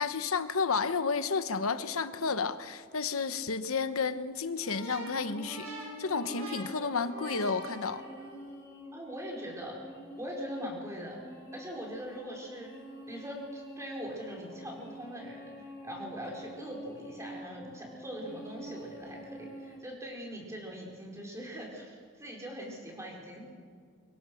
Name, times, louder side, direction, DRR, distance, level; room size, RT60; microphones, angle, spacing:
voice 1, 0.0-8.0, left 5 dB, 85° left, 11 dB, 1.1 m, -31 dB
sound 1, 4.6-8.5, right 2 dB, 90° right, 7.7 m, -45 dB
sound 2, 5.0-19.8, right 1 dB, 15° left, 7.5 m, -47 dB
voice 2, 8.9-9.9 10.2-11.2 11.5-12.7 13.1-23.5, equal, 15° right, -1 dB, 4.9 m, -42 dB
25.5 x 23.5 x 6.5 m, 2.2 s
head